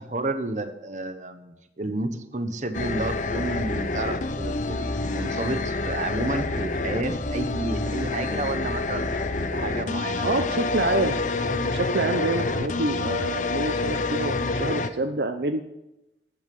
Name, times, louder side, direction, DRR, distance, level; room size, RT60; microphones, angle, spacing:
voice 1, 0.0-9.1 9.5-10.6, right 2 dB, 45° right, 9 dB, 1.1 m, -31 dB
sound 1, 2.7-14.9, left 3 dB, 45° left, 0.7 m, -27 dB
voice 2, 10.2-15.6, right 2 dB, 65° right, 7 dB, 0.8 m, -27 dB
13.5 x 8.4 x 5.4 m, 0.91 s
head